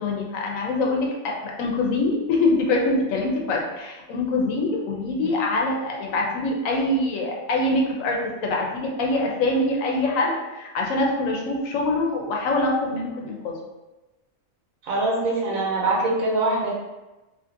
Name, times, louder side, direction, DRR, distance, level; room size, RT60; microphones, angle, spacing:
voice 1, 0.0-13.5, left 2 dB, 80° left, -1 dB, 1.0 m, -24 dB
voice 2, 14.8-16.8, right 2 dB, 85° right, -3 dB, 1.3 m, -23 dB
2.7 x 2.6 x 2.5 m, 1.1 s
omnidirectional pair, 1.4 m